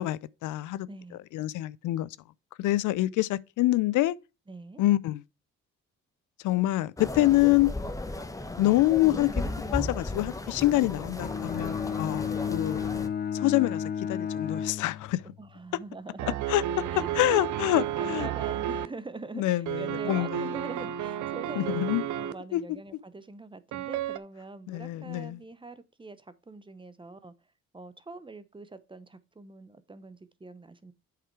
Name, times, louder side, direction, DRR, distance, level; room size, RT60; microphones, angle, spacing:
voice 1, 0.0-0.9 1.3-2.1 2.6-4.1 4.8-5.2 6.4-7.7 8.6-9.3 9.7-12.9 13.3-15.2 16.5-16.6 17.2-18.3 19.4-20.4 21.6-22.0 22.5-22.6 24.7-25.4, left 16 dB, 80° left, 0.5 m, -26 dB
voice 2, 0.9-1.2 2.6-2.8 4.5-4.8 15.2-16.4 16.9-17.4 17.7-27.3 27.7-30.9, right 3 dB, 15° right, 0.8 m, -44 dB
sound 1, 7.0-13.1, left 2 dB, 10° left, 1.0 m, -35 dB
Bowed string instrument, 11.2-15.5, left 8 dB, 35° left, 0.7 m, -32 dB
sound 2, 16.2-18.9 19.7-22.3 23.7-24.2, right 10 dB, 75° right, 0.6 m, -32 dB
7.8 x 4.9 x 4.6 m
cardioid pair, 90°, 30 cm